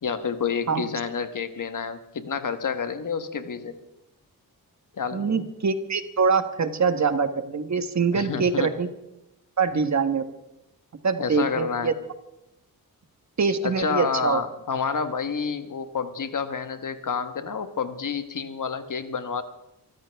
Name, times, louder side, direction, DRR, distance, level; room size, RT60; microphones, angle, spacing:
voice 1, 0.0-3.8 4.9-5.4 8.1-8.7 11.2-11.9 13.6-19.4, left 6 dB, 55° left, 9 dB, 1.4 m, -29 dB
voice 2, 5.1-8.9 9.6-10.2 11.0-11.9 13.4-14.4, right 5 dB, 45° right, 9 dB, 1.3 m, -24 dB
25.0 x 14.5 x 3.5 m, 0.89 s
wide cardioid pair, 95°, 37 cm